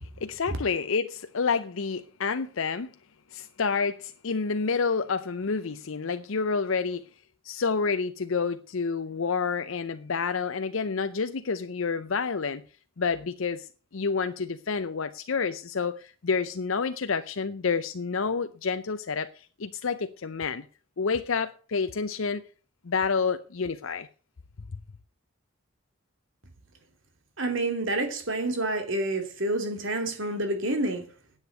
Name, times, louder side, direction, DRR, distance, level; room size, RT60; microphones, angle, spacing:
voice 1, 0.2-2.9 3.3-7.1 7.4-12.6 13.0-20.7 21.0-22.4 22.8-24.1, left 5 dB, 70° left, 0.6 m, -29 dB
voice 2, 27.4-31.0, right 2 dB, 65° right, 2.7 m, -28 dB
9.9 x 8.2 x 8.0 m
head